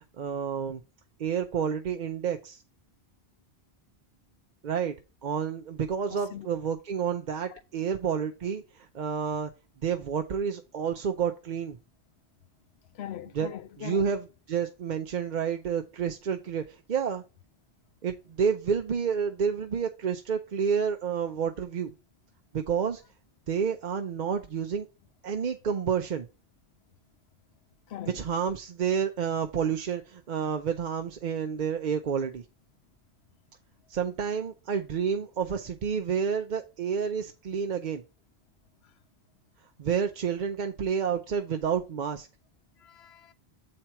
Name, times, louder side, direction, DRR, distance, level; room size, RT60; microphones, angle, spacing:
voice 1, 0.2-0.8 1.2-2.6 4.6-4.9 5.2-9.5 9.8-11.8 13.3-13.5 13.8-17.2 18.0-21.9 22.5-23.0 23.5-24.9 25.2-26.3 28.1-32.4 33.9-38.0 39.8-42.3, right 7 dB, 55° right, 0.7 m, -29 dB
voice 2, 6.1-6.5 7.8-7.9 12.9-14.2 27.9-28.2 42.8-43.3, left 10 dB, 85° left, 0.9 m, -41 dB
7.6 x 4.4 x 4.4 m
omnidirectional pair, 1.0 m